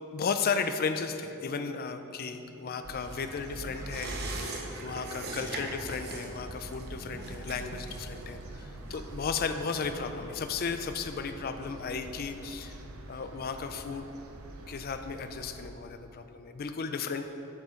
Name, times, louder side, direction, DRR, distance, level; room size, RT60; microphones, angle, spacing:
voice 1, 0.1-4.1 4.4-12.8 13.1-14.1 14.7-17.2, left 5 dB, 45° left, 8 dB, 0.4 m, -34 dB
sound 1, 2.2-12.0, equal, 20° right, 1.7 m, -55 dB
sound 2, 2.8-15.7, right 1 dB, 75° right, 0.7 m, -45 dB
sound 3, 3.0-10.1 10.4-10.5, right 2 dB, 50° right, 0.9 m, -42 dB
8.5 x 6.6 x 3.8 m, 2.8 s
head